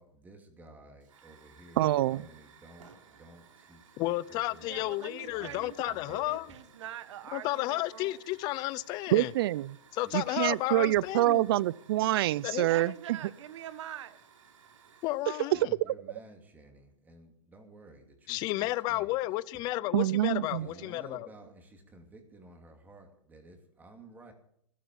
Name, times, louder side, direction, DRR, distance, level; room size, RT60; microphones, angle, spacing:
voice 1, 0.0-4.9 5.2-6.5 9.9-10.3 15.5-19.2 20.5-24.3, right 2 dB, 10° right, 2.5 m, -53 dB
Hiss / Fire, 1.0-15.5, right 7 dB, 80° right, 3.3 m, -59 dB
voice 2, 1.8-2.2 9.1-9.8 10.1-12.9 15.9-16.0 19.9-20.7, right 15 dB, 45° right, 0.5 m, -26 dB
voice 3, 4.0-6.5 7.3-9.3 9.9-11.4 12.4-12.9 15.0-15.7 18.3-21.3, left 18 dB, 25° left, 0.5 m, -32 dB
voice 4, 4.6-8.2 12.6-14.2 19.7-20.9 21.4-21.5, right 10 dB, 65° right, 1.4 m, -45 dB
16.5 x 12.5 x 5.3 m
hypercardioid pair, 155°, 16 cm